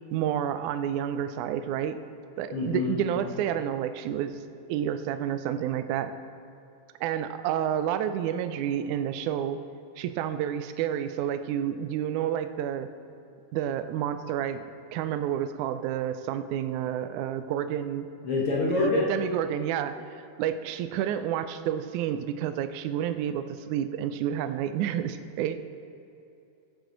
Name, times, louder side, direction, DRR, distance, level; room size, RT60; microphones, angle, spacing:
voice 1, 0.1-2.0 2.4-4.4 4.7-6.1 7.0-9.6 10.0-12.9 13.5-14.6 14.9-18.1 18.7-25.6, right 10 dB, 80° right, 10 dB, 2.0 m, -30 dB
voice 2, 2.5-3.2 18.2-19.2, left 3 dB, 60° left, -3 dB, 1.7 m, -26 dB
15.5 x 8.1 x 3.9 m, 2.7 s
omnidirectional pair, 3.6 m